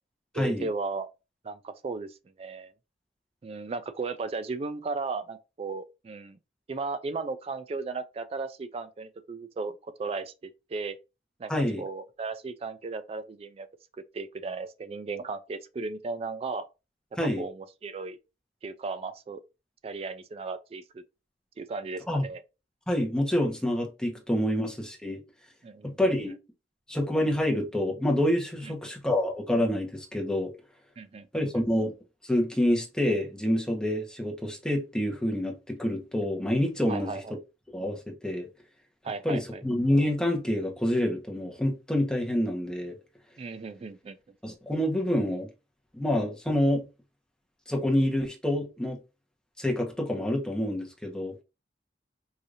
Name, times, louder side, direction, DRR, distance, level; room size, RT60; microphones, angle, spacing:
voice 1, 0.3-1.1 1.4-2.7 3.4-6.4 6.7-11.0 11.4-11.5 11.8-13.7 14.1-16.7 17.4-18.2 18.6-19.4 19.8-21.0 21.6-22.4 25.6-26.1 28.6-28.7 31.0-31.3 31.5-31.6 36.9-37.3 39.0-39.6 43.4-44.2, right 4 dB, 35° right, 0.3 m, -35 dB
voice 2, 11.5-11.8 17.2-17.4 22.1-22.3 22.9-25.2 26.0-26.3 26.9-30.5 31.3-31.9 32.2-37.2 37.7-38.5 39.2-43.0 44.4-45.5 45.9-46.8 47.7-49.0 49.6-51.3, left 1 dB, 5° left, 1.0 m, -27 dB
4.8 x 2.7 x 2.6 m
head